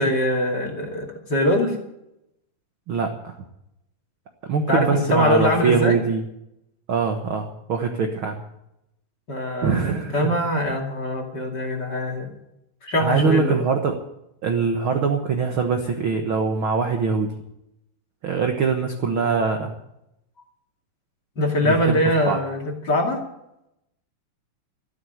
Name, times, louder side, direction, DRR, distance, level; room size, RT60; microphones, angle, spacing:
voice 1, 0.0-1.8 4.7-6.0 9.3-12.4 12.8-13.6 21.4-23.2, left 1 dB, 35° left, 1 dB, 2.7 m, -22 dB
voice 2, 2.9-3.4 4.4-6.3 6.9-8.4 9.6-10.3 13.0-14.0 14.4-17.3 18.2-19.7 21.6-22.0 22.2-22.4, right 5 dB, 55° right, 4 dB, 1.5 m, -23 dB
14.0 x 12.5 x 7.9 m, 0.84 s
omnidirectional pair, 4.0 m